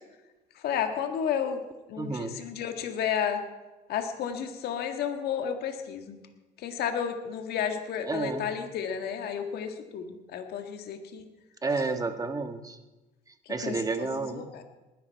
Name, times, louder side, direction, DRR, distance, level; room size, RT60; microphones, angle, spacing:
voice 1, 0.5-1.6 1.9-3.4 3.9-6.2 6.6-11.3 13.4-14.6, left 8 dB, 70° left, 6 dB, 1.7 m, -32 dB
voice 2, 2.0-2.3 8.1-8.5 11.6-12.8 13.5-14.5, right 3 dB, 20° right, 7 dB, 1.4 m, -30 dB
19.5 x 11.0 x 4.6 m, 1.1 s
cardioid pair, 110°, 17 cm